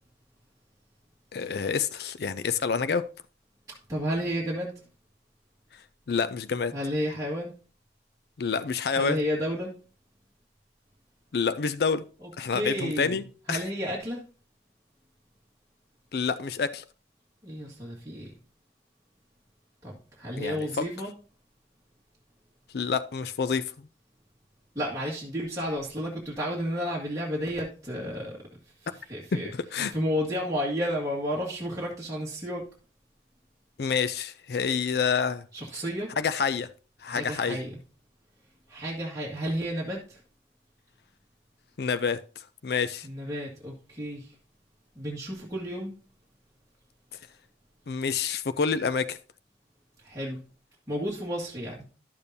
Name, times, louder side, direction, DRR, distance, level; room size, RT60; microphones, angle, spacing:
voice 1, 1.3-3.1 6.1-6.7 8.4-9.2 11.3-12.0 12.4-13.2 13.5-13.6 16.1-16.8 20.4-20.8 22.7-23.7 29.3-29.9 33.8-35.4 36.2-36.7 37.0-37.6 41.8-43.1 47.9-49.2, left 5 dB, 60° left, 0.4 m, -28 dB
voice 2, 3.9-4.7 6.7-7.5 9.0-9.8 12.2-13.2 13.5-14.2 17.4-18.3 19.8-21.1 24.8-28.4 28.8-29.5 29.9-32.7 35.5-36.1 37.1-37.8 38.7-40.2 43.0-44.3 45.0-46.0 50.0-50.4 50.9-51.8, equal, 20° right, 1.9 m, -32 dB
12.0 x 6.9 x 2.7 m
head